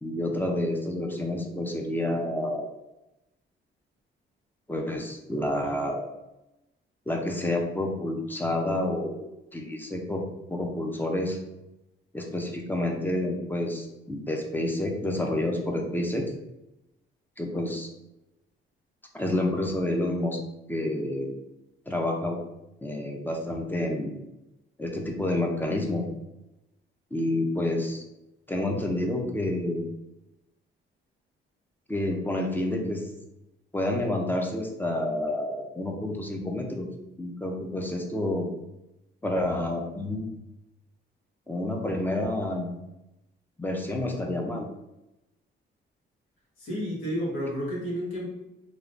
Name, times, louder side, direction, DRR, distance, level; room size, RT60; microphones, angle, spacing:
voice 1, 0.0-2.7 4.7-6.1 7.1-10.2 10.5-11.4 12.1-16.3 17.4-17.9 19.1-20.4 20.7-21.3 21.9-22.4 22.8-24.3 24.8-26.0 27.1-28.0 28.5-29.8 31.9-33.1 33.7-36.9 37.2-38.5 39.2-40.3 41.5-42.7 43.6-44.7, left 1 dB, 10° left, 2 dB, 0.5 m, -29 dB
voice 2, 46.6-48.3, equal, 85° left, -4 dB, 1.1 m, -31 dB
3.2 x 2.3 x 2.5 m, 0.91 s
cardioid pair, 90°, 20 cm